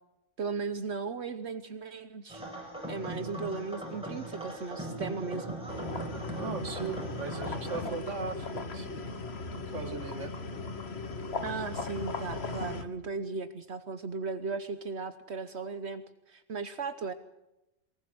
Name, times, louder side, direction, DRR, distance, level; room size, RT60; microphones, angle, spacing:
voice 1, 0.4-2.4 2.9-5.5 11.4-16.0 16.3-17.1, right 4 dB, 65° right, 10 dB, 1.3 m, -36 dB
sound 1, 2.3-7.8, right 1 dB, 5° right, 7.9 m, -39 dB
sound 2, 5.7-12.9, left 3 dB, 60° left, 1.7 m, -38 dB
voice 2, 6.4-9.1 9.5-10.3, right 5 dB, 85° right, 9 dB, 2.0 m, -38 dB
23.0 x 19.5 x 7.8 m, 0.94 s
omnidirectional pair, 1.2 m